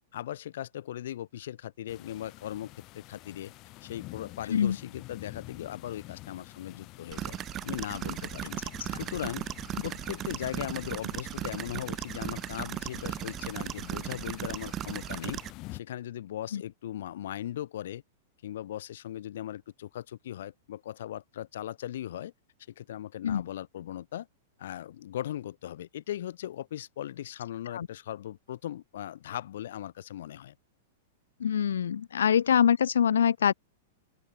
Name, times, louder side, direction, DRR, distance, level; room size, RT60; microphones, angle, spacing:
voice 1, 0.1-3.5 3.8-7.4 7.6-8.6 9.0-9.5 9.8-15.4 15.7-18.0 18.4-22.3 22.7-24.3 24.6-30.5, left 12 dB, 70° left, 5.8 m, -38 dB
sound 1, 1.9-15.8, left 21 dB, 40° left, 4.6 m, -48 dB
sound 2, 7.1-15.5, right 12 dB, 30° right, 0.5 m, -37 dB
voice 2, 31.4-33.5, left 8 dB, 85° left, 0.6 m, -24 dB
open air
hypercardioid pair, 130°, 0 cm